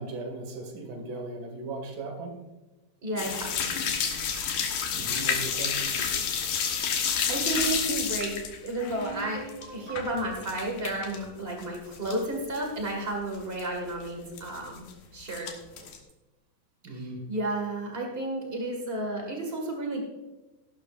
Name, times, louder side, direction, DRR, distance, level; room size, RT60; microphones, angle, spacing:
voice 1, 0.0-2.4 4.9-5.9 9.8-9.9 15.7-15.9 16.8-17.3, right 2 dB, 60° right, 3 dB, 3.4 m, -38 dB
voice 2, 3.0-3.6 7.2-9.4 9.7-14.9 15.1-15.5 16.9-20.0, right 2 dB, 85° right, 1 dB, 0.5 m, -32 dB
sound 1, 3.2-11.2 11.5-12.3 12.5-12.6 13.1-13.2 13.3-13.6 14.4-14.9 15.3-16.0, left 7 dB, 65° left, 2.5 m, -30 dB
sound 2, 8.9-12.5, right 1 dB, 80° left, 5.1 m, -45 dB
16.5 x 12.0 x 2.5 m, 1.1 s
omnidirectional pair, 4.6 m